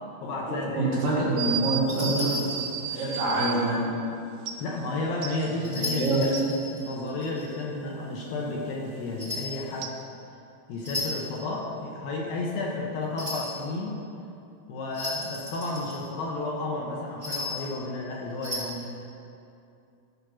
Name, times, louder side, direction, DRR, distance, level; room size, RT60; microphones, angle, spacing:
voice 1, 0.2-1.2 4.6-6.4 6.7-9.9 10.7-14.0 14.7-19.2, left 2 dB, 70° left, -1 dB, 2.5 m, -32 dB
voice 2, 0.7-2.4 2.9-4.1 5.4-6.2, right 2 dB, 60° right, -7 dB, 3.8 m, -26 dB
sound 1, 1.4-3.6 4.5-4.6 5.2-6.5 9.8-9.9, right 8 dB, 80° right, 2.5 m, -33 dB
sound 2, 1.9-3.4 5.6-7.5 9.2-9.6 10.8-11.4 13.2-13.6 14.9-16.2 17.2-17.7 18.3-18.6, left 2 dB, 20° right, 1.3 m, -35 dB
15.0 x 5.1 x 6.2 m, 2.6 s
omnidirectional pair, 4.7 m